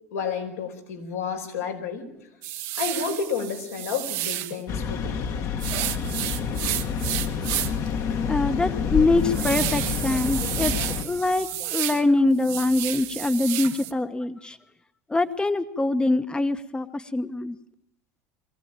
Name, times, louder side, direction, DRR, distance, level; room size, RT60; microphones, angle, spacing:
voice 1, 0.1-2.1 2.7-5.3 7.0-7.3 8.0-8.1, left 6 dB, 85° left, 1 dB, 4.9 m, -31 dB
sound 1, 2.4-4.6 5.6-7.9 8.3-8.4 8.8-12.0 12.3-13.9, right 14 dB, 65° right, 1.3 m, -31 dB
sound 2, 4.7-11.0, left 6 dB, 50° left, 1.7 m, -28 dB
voice 2, 8.3-14.6 15.1-17.6, left 2 dB, 10° left, 10 dB, 1.1 m, -24 dB
22.5 x 16.0 x 9.0 m, 0.87 s
hypercardioid pair, 90°, 7 cm